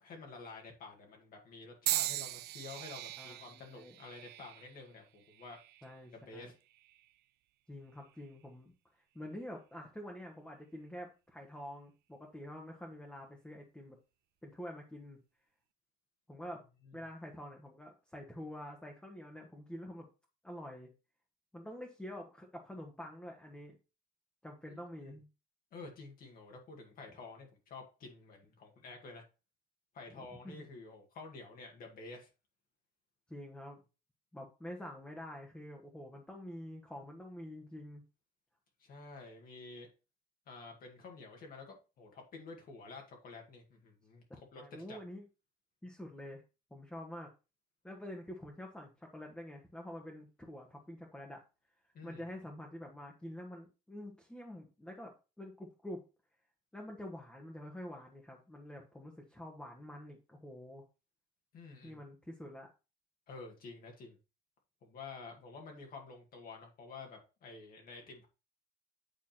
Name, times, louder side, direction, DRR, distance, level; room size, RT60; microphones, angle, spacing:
voice 1, 0.0-5.6 6.1-6.5 24.7-25.1 25.7-29.2 29.9-32.3 38.8-39.9 40.5-44.2 44.5-45.0 51.9-52.2 61.5-62.0 63.3-64.2 64.8-68.3, left 3 dB, 60° left, 2 dB, 2.1 m, -50 dB
sound 1, 1.9-6.0 6.7-7.1 8.1-8.3, right 16 dB, 75° right, 0.4 m, -39 dB
voice 2, 3.2-4.0 5.8-6.5 7.7-8.7 9.1-14.0 14.4-15.2 16.3-16.6 16.9-20.1 20.4-20.9 21.5-23.8 24.4-25.3 30.1-30.5 33.3-33.8 34.3-38.0 44.6-45.2 45.8-46.4 46.7-47.3 47.8-51.4 52.0-56.0 56.7-60.8 61.8-62.7, left 1 dB, 5° left, 0 dB, 1.4 m, -47 dB
8.8 x 3.6 x 4.4 m, 0.31 s
cardioid pair, 110°, 17 cm